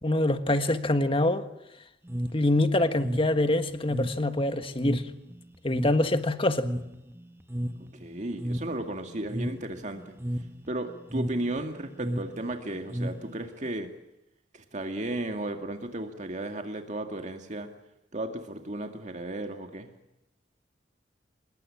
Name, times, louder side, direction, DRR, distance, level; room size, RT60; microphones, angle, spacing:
voice 1, 0.0-1.5 2.3-5.1 5.6-6.7, left 1 dB, 30° left, 1.6 m, -25 dB
sound 1, 2.1-13.7, equal, 15° right, 1.3 m, -35 dB
voice 2, 7.9-10.1 10.7-13.9 14.5-17.7 18.1-19.9, right 1 dB, 40° right, 2.1 m, -34 dB
26.0 x 22.0 x 8.8 m
head